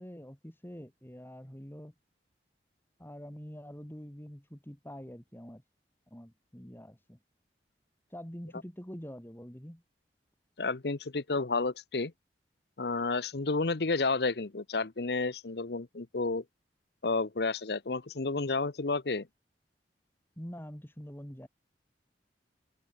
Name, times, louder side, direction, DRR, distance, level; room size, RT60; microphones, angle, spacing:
voice 1, 0.0-1.9 3.0-5.6 6.1-7.2 8.1-9.8 20.4-21.5, equal, 15° left, 2.8 m, -45 dB
voice 2, 10.6-12.1 12.8-16.4 17.0-19.3, left 3 dB, 65° left, 0.9 m, -31 dB
open air
head